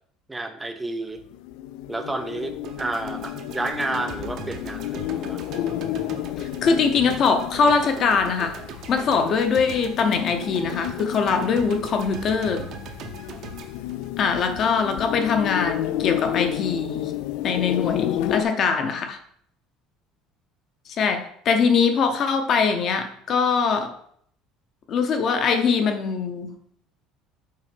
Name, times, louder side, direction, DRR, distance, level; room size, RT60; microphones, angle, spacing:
voice 1, 0.3-1.2 1.9-5.4, right 2 dB, 10° right, 7 dB, 0.4 m, -30 dB
sound 1, 1.2-18.4, left 13 dB, 75° left, 0.3 m, -31 dB
sound 2, 2.6-14.9, right 6 dB, 50° right, 0.8 m, -40 dB
voice 2, 6.4-8.6 8.9-12.7 14.2-17.1 17.4-19.2 20.9-23.9 24.9-26.5, left 5 dB, 40° left, 6 dB, 0.8 m, -22 dB
5.6 x 3.9 x 5.2 m, 0.65 s
cardioid pair, 150°, 0 cm